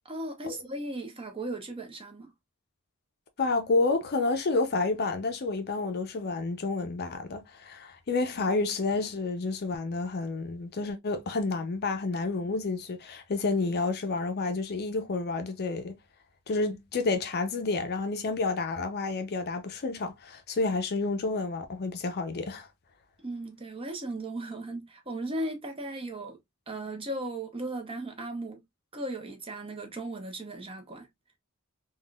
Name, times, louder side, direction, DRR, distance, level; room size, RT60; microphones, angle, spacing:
voice 1, 0.0-2.3 23.2-26.4 26.7-28.6 28.9-31.1, right 1 dB, 25° right, 0.8 m, -36 dB
voice 2, 3.4-15.9 16.5-22.7, left 3 dB, 50° left, 0.5 m, -30 dB
3.5 x 2.3 x 2.3 m
head